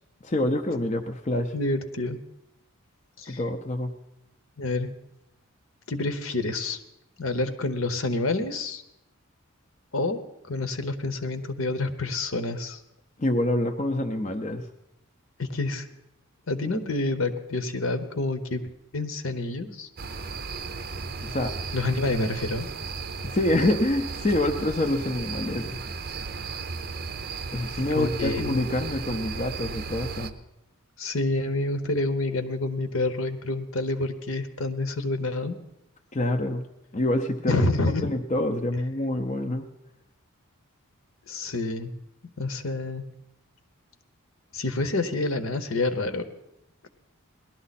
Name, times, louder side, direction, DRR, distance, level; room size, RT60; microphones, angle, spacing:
voice 1, 0.2-1.5 3.3-3.9 13.2-14.6 21.2-21.5 23.2-25.8 27.5-30.3 36.1-36.7 36.9-37.5 38.0-39.7, left 1 dB, 30° left, 4 dB, 0.6 m, -26 dB
voice 2, 1.5-2.2 3.2-3.4 4.6-4.9 5.9-6.8 7.2-8.8 9.9-12.8 15.4-15.9 16.5-18.6 18.9-19.9 21.7-22.7 27.9-28.7 31.0-35.6 37.5-38.1 41.3-41.9 42.4-43.0 44.5-46.2, left 2 dB, 65° left, 9 dB, 1.0 m, -28 dB
sound 1, 20.0-30.3, right 4 dB, 40° right, 0.6 m, -35 dB
18.0 x 12.0 x 4.2 m, 0.86 s
head